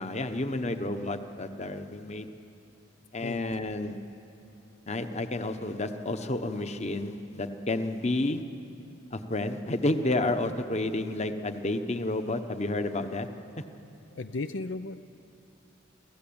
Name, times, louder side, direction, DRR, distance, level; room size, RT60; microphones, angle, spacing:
voice 1, 0.0-2.3 3.1-4.0 4.9-8.4 9.1-13.3, left 2 dB, 35° left, 8 dB, 1.2 m, -30 dB
voice 2, 14.1-15.0, left 3 dB, 75° left, 10 dB, 0.7 m, -35 dB
29.0 x 16.0 x 8.8 m, 2.9 s
head